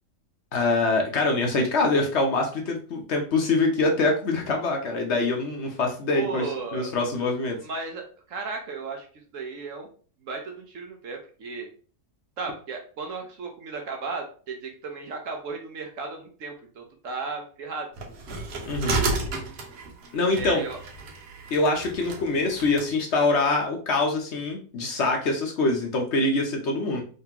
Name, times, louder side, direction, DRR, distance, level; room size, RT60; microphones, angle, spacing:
voice 1, 0.5-6.4 6.7-7.6 18.7-19.0 20.1-20.6 21.5-27.0, left 3 dB, 55° left, 2 dB, 0.8 m, -24 dB
voice 2, 6.1-6.9 7.6-9.1 9.3-9.9 10.2-11.7 12.4-17.9 20.3-20.8, right 4 dB, 65° right, 3 dB, 0.9 m, -35 dB
sound 1, 18.0-22.9, right 3 dB, 80° right, 1.4 m, -32 dB
3.8 x 3.2 x 2.8 m, 0.41 s
omnidirectional pair, 1.7 m